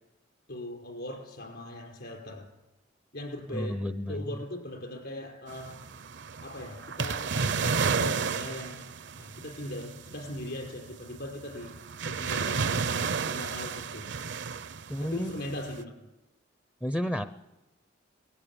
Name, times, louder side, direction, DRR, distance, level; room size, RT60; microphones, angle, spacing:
voice 1, 0.5-2.5 3.1-3.8 4.1-5.8 6.4-8.9 9.2-11.8 12.0-14.1 15.0-15.9, left 1 dB, 60° left, 2 dB, 5.1 m, -39 dB
voice 2, 3.5-4.2 14.9-15.3 16.8-17.2, equal, 10° left, 10 dB, 0.6 m, -31 dB
sound 1, 5.5-15.8, right 5 dB, 65° right, 0.7 m, -32 dB
20.0 x 16.0 x 8.9 m, 1.0 s
head